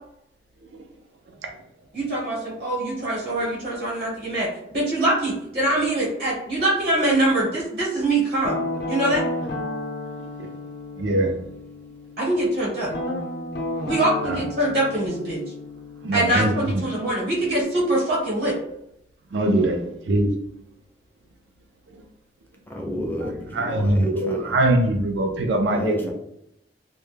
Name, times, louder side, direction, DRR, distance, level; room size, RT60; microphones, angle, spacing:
voice 1, 1.9-4.5 4.7-8.6 8.9-9.2 12.2-12.9 13.8-15.4 16.1-18.5, right 1 dB, 60° right, -6 dB, 0.9 m, -23 dB
Guitar, 8.4-12.2 12.9-17.6, left 1 dB, 70° left, 0.6 m, -32 dB
voice 2, 11.0-11.4 13.8-13.9 14.2-14.4 16.0-16.8 19.3-20.3 21.9-22.0 23.2-26.1, right 1 dB, 80° right, 3 dB, 0.4 m, -23 dB
voice 3, 22.7-24.5 25.7-26.1, equal, 10° left, 0 dB, 0.4 m, -30 dB
2.1 x 2.1 x 3.2 m, 0.79 s
head